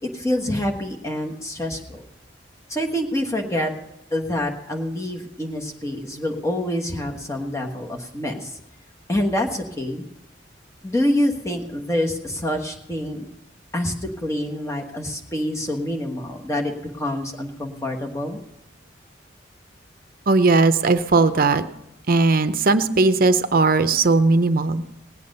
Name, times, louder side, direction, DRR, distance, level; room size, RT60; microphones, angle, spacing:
voice 1, 0.0-2.0 2.7-3.7 4.1-8.5 9.1-10.0 10.8-13.3 13.7-18.4, left 1 dB, 15° left, 1 dB, 1.3 m, -26 dB
voice 2, 20.3-21.7 22.1-24.9, right 3 dB, 50° right, 10 dB, 0.7 m, -18 dB
18.5 x 8.6 x 5.4 m, 0.86 s
head